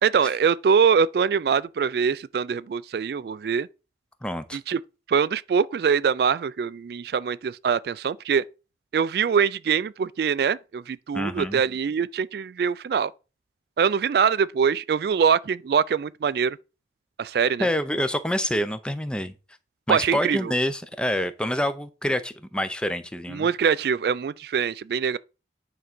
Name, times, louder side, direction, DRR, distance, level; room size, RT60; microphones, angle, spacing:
voice 1, 0.0-3.7 4.5-4.8 5.1-8.4 8.9-13.1 13.8-16.6 17.2-17.7 19.9-20.5 23.3-25.2, right 6 dB, 60° right, 0.3 m, -23 dB
voice 2, 4.2-4.6 11.1-11.6 17.6-19.3 19.9-23.5, equal, 5° left, 0.5 m, -27 dB
9.5 x 3.7 x 5.9 m
head